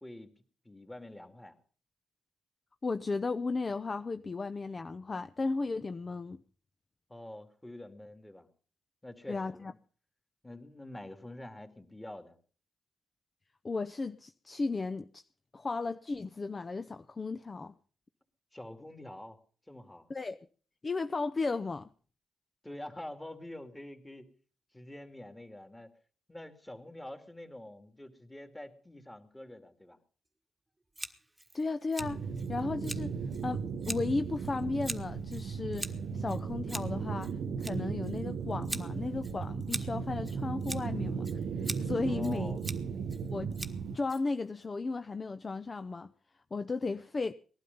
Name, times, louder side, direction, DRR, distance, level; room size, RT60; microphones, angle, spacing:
voice 1, 0.6-1.6 7.1-8.5 9.0-9.7 10.4-12.4 18.5-19.4 19.7-20.1 22.6-24.3 24.7-25.9 26.3-30.0 42.0-42.6, left 1 dB, 10° left, 2.6 m, -46 dB
voice 2, 2.8-6.4 9.3-9.7 13.6-15.2 15.5-17.7 20.1-20.5 20.8-21.9 31.5-32.2 32.5-33.1 33.4-42.5 43.3-43.5 43.9-46.1 46.5-47.3, left 3 dB, 30° left, 0.7 m, -35 dB
Scissors, 30.9-44.7, right 2 dB, 15° right, 1.4 m, -44 dB
sound 1, 32.0-44.0, right 5 dB, 75° right, 1.2 m, -36 dB
19.5 x 12.0 x 5.4 m
cardioid pair, 90°, 0 cm